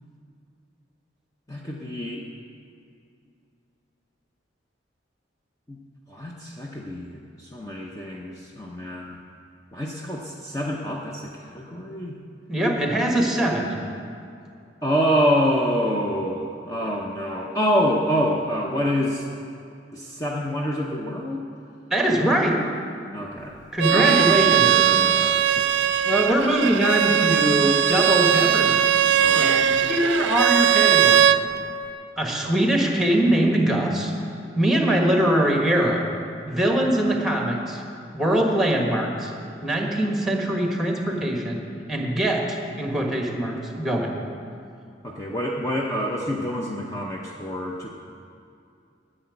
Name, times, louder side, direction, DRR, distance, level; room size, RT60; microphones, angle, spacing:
voice 1, 1.5-2.2 5.7-5.8 6.1-9.2 9.7-12.2 14.8-19.2 19.9-21.4 23.1-23.6 23.9-25.7 29.2-29.6 45.0-47.9, equal, 20° left, -2 dB, 0.8 m, -27 dB
voice 2, 12.5-13.8 21.9-22.6 23.7-24.7 26.0-28.8 29.3-31.4 32.2-34.1 34.5-36.1 36.4-37.8 38.1-39.3 39.6-41.6 41.9-44.1, right 1 dB, ahead, 1 dB, 1.4 m, -22 dB
Bowed string instrument, 23.8-31.4, right 10 dB, 70° right, 0.4 m, -19 dB
10.0 x 7.8 x 9.4 m, 2.5 s
head